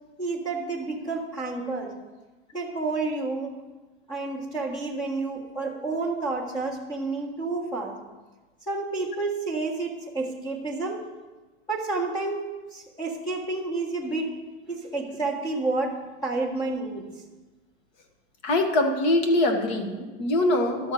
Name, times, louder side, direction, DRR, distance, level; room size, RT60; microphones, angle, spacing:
voice 1, 0.2-1.9 2.5-3.6 4.1-8.0 8.7-11.0 11.7-14.3 14.6-16.0 16.2-17.1, right 3 dB, 15° left, -1 dB, 1.6 m, -30 dB
voice 2, 18.4-20.9, left 1 dB, 40° left, 4 dB, 1.5 m, -23 dB
12.0 x 4.5 x 7.7 m, 1.2 s
supercardioid pair, 165°, 31 cm